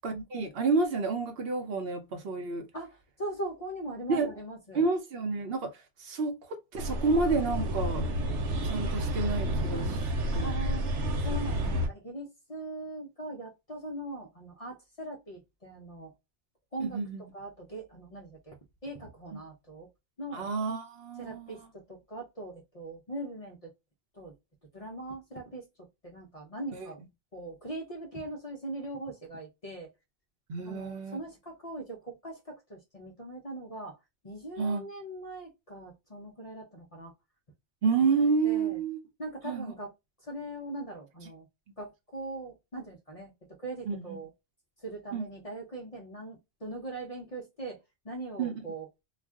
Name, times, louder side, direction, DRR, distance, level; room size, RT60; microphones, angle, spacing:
voice 1, 0.0-2.7 4.1-4.3 4.7-5.7 6.0-6.3 6.7-8.0 8.6-10.0 10.3-10.5 11.6-11.8 16.8-17.2 20.3-21.5 26.7-26.9 30.5-31.2 34.6-34.8 37.8-39.0 39.4-39.7 43.9-44.2 45.1-45.3 48.4-48.5, right 4 dB, 60° right, 0.8 m, -29 dB
voice 2, 2.7-4.8 10.3-10.8 11.2-16.1 16.7-17.0 17.3-18.6 18.8-19.9 20.2-20.5 21.2-23.7 24.1-24.3 24.7-25.7 26.0-27.0 27.3-29.9 30.6-34.0 34.2-37.1 38.4-38.8 39.2-39.9 40.2-41.5 41.8-43.3 43.6-44.3 44.8-48.9, right 1 dB, 40° left, 0.6 m, -40 dB
sound 1, 6.8-11.9, equal, 90° right, 1.0 m, -30 dB
2.4 x 2.2 x 3.4 m
omnidirectional pair, 1.2 m